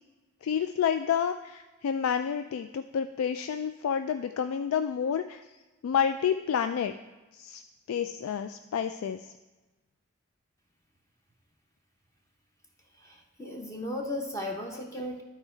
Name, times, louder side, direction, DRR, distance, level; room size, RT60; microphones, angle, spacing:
voice 1, 0.4-5.4 5.8-6.9 7.3-7.6 7.9-9.3, left 7 dB, 85° left, 9 dB, 0.3 m, -29 dB
voice 2, 13.0-15.2, left 1 dB, 15° left, 1 dB, 0.7 m, -36 dB
11.5 x 4.5 x 4.5 m, 1.2 s
head